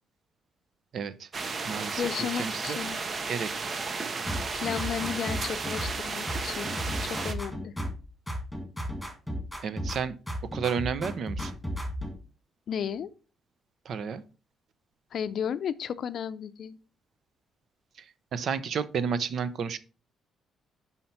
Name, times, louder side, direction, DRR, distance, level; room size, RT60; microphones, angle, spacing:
voice 1, 0.9-1.3 1.6-2.8 3.3-3.5 9.6-10.1 10.4-11.6 13.8-14.2 18.0-19.8, right 6 dB, 60° right, 0.7 m, -32 dB
sound 1, 1.3-7.3, right 4 dB, 40° right, 0.9 m, -34 dB
voice 2, 2.0-3.0 4.5-7.7 12.7-13.1 15.1-16.8, left 8 dB, 60° left, 0.5 m, -33 dB
sound 2, 4.3-6.0 6.3-8.0 8.3-10.0 10.3-12.1, equal, 5° left, 2.2 m, -34 dB
5.7 x 5.4 x 4.4 m
cardioid pair, 90°, 0 cm